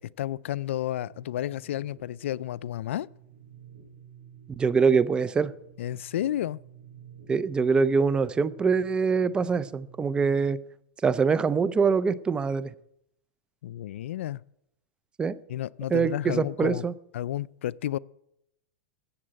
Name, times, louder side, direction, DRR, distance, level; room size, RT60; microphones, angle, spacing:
voice 1, 0.0-3.1 5.8-6.6 13.6-14.4 15.5-16.9 17.1-18.0, left 12 dB, 80° left, 0.4 m, -31 dB
sound 1, 1.0-10.5, right 8 dB, 70° right, 5.4 m, -52 dB
voice 2, 4.6-5.5 7.3-10.6 11.0-12.7 15.2-15.4 15.9-16.9, right 5 dB, 15° right, 0.5 m, -24 dB
14.0 x 7.8 x 8.7 m
supercardioid pair, 145°, 7 cm